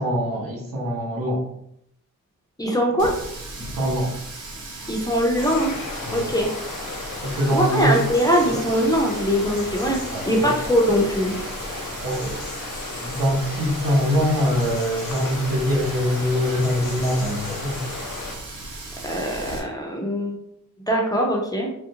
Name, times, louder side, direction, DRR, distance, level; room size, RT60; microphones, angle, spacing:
voice 1, 0.0-1.5 3.6-4.1 6.0-6.3 7.2-8.0 10.1-10.5 12.0-12.4 13.0-17.8, equal, 80° right, -3 dB, 1.1 m, -23 dB
voice 2, 2.6-3.2 4.9-5.8 6.1-6.5 7.5-10.0 10.3-11.3 19.0-20.4 20.9-21.7, equal, 10° left, -1 dB, 0.4 m, -21 dB
Water tap faucet, 3.0-19.6, right 2 dB, 65° right, 0.7 m, -37 dB
sound 1, 5.4-18.4, left 3 dB, 90° left, 0.7 m, -34 dB
3.3 x 2.5 x 2.8 m, 0.75 s
wide cardioid pair, 160°, 33 cm